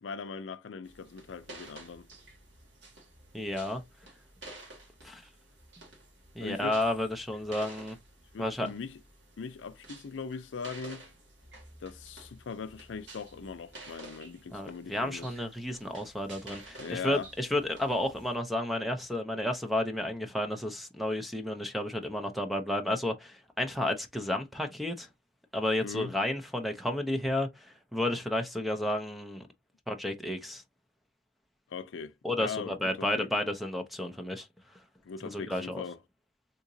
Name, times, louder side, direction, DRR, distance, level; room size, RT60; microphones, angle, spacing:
voice 1, 0.0-2.1 6.4-6.8 8.3-9.0 9.4-11.1 11.8-15.3 16.8-17.3 25.8-26.1 31.7-33.3 35.1-36.0, left 5 dB, 85° left, 0.4 m, -40 dB
sound 1, 0.8-18.3, right 2 dB, 65° right, 1.7 m, -51 dB
voice 2, 3.3-3.8 5.0-5.2 6.4-8.0 8.4-8.7 14.5-25.1 25.5-29.4 29.9-30.6 32.2-34.5 35.2-35.8, left 1 dB, ahead, 0.5 m, -32 dB
3.8 x 2.8 x 2.6 m
head